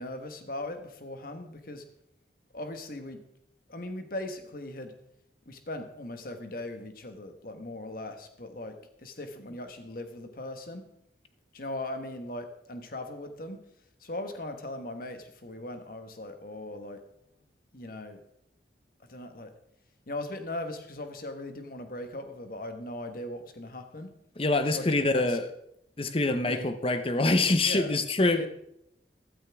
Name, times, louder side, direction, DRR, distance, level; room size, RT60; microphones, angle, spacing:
voice 1, 0.0-1.8 2.5-3.2 3.7-4.9 5.5-10.9 11.5-13.6 14.0-17.0 17.7-18.2 19.1-19.5 20.1-24.1 24.7-25.4 26.4-26.7 27.6-27.9 28.4-28.5, left 1 dB, 50° left, 1.3 m, -39 dB
voice 2, 24.4-25.5 26.0-28.5, left 2 dB, 30° left, 0.8 m, -25 dB
14.5 x 13.0 x 3.5 m
head